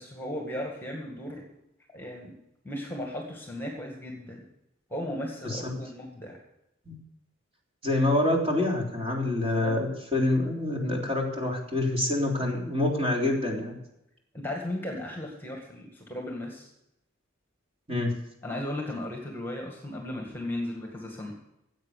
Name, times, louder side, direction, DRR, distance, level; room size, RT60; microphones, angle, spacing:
voice 1, 0.0-1.5 1.9-2.3 2.6-4.4 4.9-6.4 9.4-9.8 14.3-16.7 18.4-21.3, left 1 dB, 10° left, 0 dB, 2.0 m, -36 dB
voice 2, 7.8-13.7 17.9-18.1, left 1 dB, 30° right, -1 dB, 3.4 m, -26 dB
16.0 x 8.3 x 6.6 m, 0.84 s
head